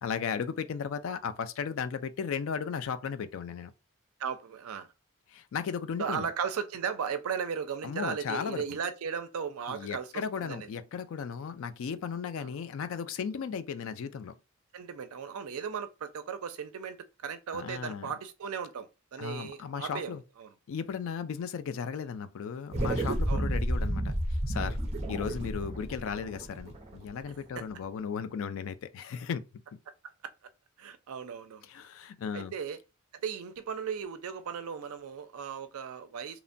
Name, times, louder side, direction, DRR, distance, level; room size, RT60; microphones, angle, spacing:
voice 1, 0.0-3.7 5.3-6.3 7.8-8.6 9.7-14.3 17.5-18.1 19.2-20.2 20.7-24.1 24.5-24.8 25.1-29.4 31.7-32.5, left 6 dB, 60° left, 0.3 m, -35 dB
voice 2, 4.2-4.9 6.0-10.7 12.4-12.5 14.7-20.5 23.3-23.5 27.6-27.7 30.8-31.7 32.3-32.8 33.1-36.4, right 7 dB, 75° right, 0.4 m, -36 dB
sound 1, 22.7-27.4, right 1 dB, 30° right, 0.6 m, -31 dB
2.9 x 2.1 x 2.5 m
head